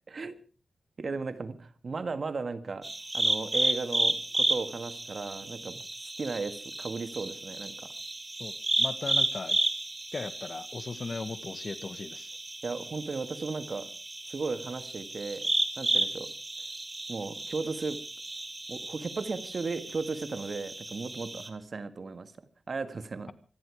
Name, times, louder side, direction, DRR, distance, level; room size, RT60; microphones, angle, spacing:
voice 1, 1.0-5.8 6.2-7.9 12.6-13.9 14.3-15.5 15.8-16.3 17.1-18.0 18.7-22.3 22.7-23.3, right 4 dB, 50° right, 1.7 m, -35 dB
sound 1, 2.8-21.5, right 2 dB, 25° right, 2.3 m, -33 dB
voice 2, 8.4-9.6 10.1-12.3, left 4 dB, 45° left, 1.6 m, -38 dB
26.0 x 10.5 x 4.8 m
wide cardioid pair, 90°, 0 cm